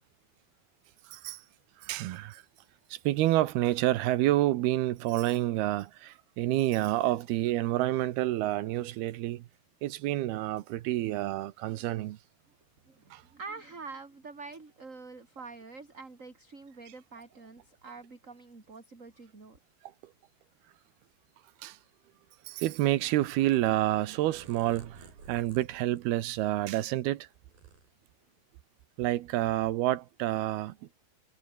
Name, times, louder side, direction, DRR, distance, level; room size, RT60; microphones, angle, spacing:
voice 1, 1.1-1.4 1.8-2.4 2.9-9.5 9.8-12.2 13.1-13.2 21.6-21.8 22.5-27.3 29.0-30.8, right 15 dB, 75° right, 2.9 m, -28 dB
voice 2, 12.9-19.6, right 4 dB, 20° right, 3.3 m, -46 dB
Purr, 23.4-26.9 27.3-28.4, right 4 dB, 60° right, 9.2 m, -54 dB
omnidirectional pair, 4.7 m